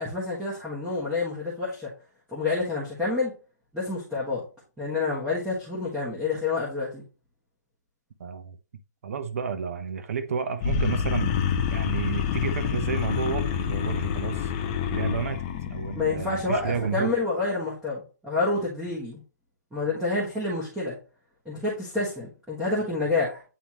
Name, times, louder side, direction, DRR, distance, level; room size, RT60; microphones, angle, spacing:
voice 1, 0.0-1.9 2.3-3.3 3.7-4.4 4.8-7.0 16.0-19.2 19.7-21.0 21.4-23.4, left 3 dB, 5° right, 1.3 m, -28 dB
voice 2, 8.2-8.6 9.0-11.3 11.7-14.5 14.9-15.4 15.7-17.1, right 6 dB, 50° right, 0.8 m, -31 dB
sound 1, 10.6-16.9, left 7 dB, 20° left, 0.6 m, -28 dB
9.2 x 3.5 x 3.0 m
hypercardioid pair, 165°, 10 cm